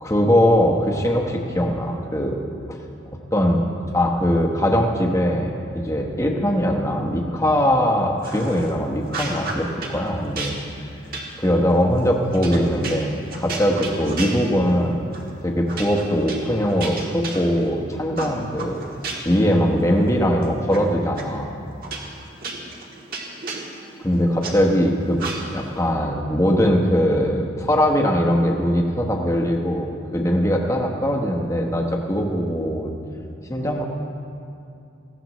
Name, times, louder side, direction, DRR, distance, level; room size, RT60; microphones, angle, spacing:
voice 1, 0.0-2.4 2.7-2.8 3.3-3.7 3.9-10.5 11.4-15.1 15.4-18.8 19.2-21.6 24.0-25.2 25.5-32.9 33.5-33.8, equal, 15° left, 0 dB, 1.1 m, -21 dB
sound 1, 8.2-8.7 9.1-10.0 10.4-14.8 15.1-15.3 15.7-17.8 18.2-19.4 19.8-20.8 21.2-21.3 21.8-24.5 25.2-25.7, right 3 dB, 45° right, 1.5 m, -33 dB
18.5 x 15.0 x 3.1 m, 2.7 s
head